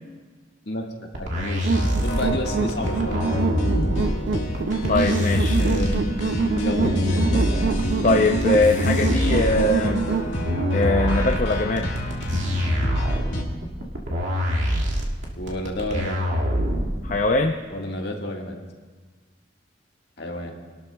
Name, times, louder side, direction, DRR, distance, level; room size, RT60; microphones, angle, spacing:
voice 1, 0.7-3.3 5.6-5.9 6.6-7.4 15.3-16.2 17.7-18.6 20.2-20.6, left 1 dB, 55° left, 0 dB, 1.6 m, -30 dB
sound 1, 1.1-17.1, equal, 80° right, 2.0 m, -24 dB
sound 2, 1.6-10.3, right 5 dB, 60° right, 0.4 m, -26 dB
sound 3, 1.7-13.4, equal, 75° left, 1.9 m, -29 dB
voice 2, 4.9-5.6 8.0-10.1 10.7-11.9 17.0-17.6, left 2 dB, 40° left, 3 dB, 0.5 m, -21 dB
23.0 x 12.5 x 2.3 m, 1.5 s
head